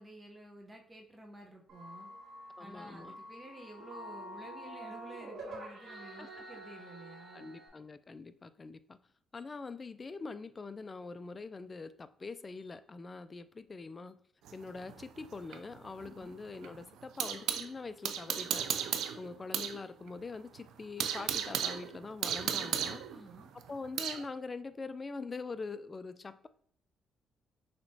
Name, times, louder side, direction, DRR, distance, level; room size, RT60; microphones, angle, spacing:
voice 1, 0.0-2.1 2.6-7.5 16.0-16.3 23.1-23.5, right 1 dB, 20° right, 1 dB, 0.8 m, -51 dB
sound 1, 1.7-7.7, right 1 dB, 65° right, 1.8 m, -47 dB
voice 2, 2.6-3.2 6.2-6.3 7.3-9.0 9.3-14.2 14.5-18.7 19.2-23.0 23.5-26.5, left 4 dB, 30° left, 13 dB, 0.3 m, -44 dB
sound 2, 14.5-17.7 18.0-19.8 20.1-20.2 20.6-24.2, right 9 dB, 85° right, 0.4 m, -35 dB
6.3 x 2.9 x 2.7 m, 0.63 s
cardioid pair, 90°, 0 cm